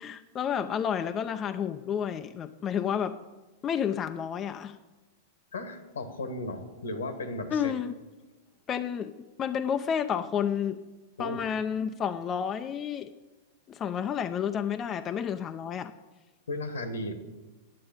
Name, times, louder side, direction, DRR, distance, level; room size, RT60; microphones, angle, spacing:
voice 1, 0.0-3.1 3.6-4.8 7.5-7.9 8.7-9.1 9.4-10.8 11.2-13.1 13.7-15.9, left 8 dB, 30° left, 8 dB, 0.6 m, -30 dB
voice 2, 5.5-7.8 11.2-11.4 16.5-17.1, left 2 dB, 80° left, 9 dB, 1.6 m, -35 dB
9.7 x 7.7 x 8.7 m, 1.2 s
hypercardioid pair, 100°, 0 cm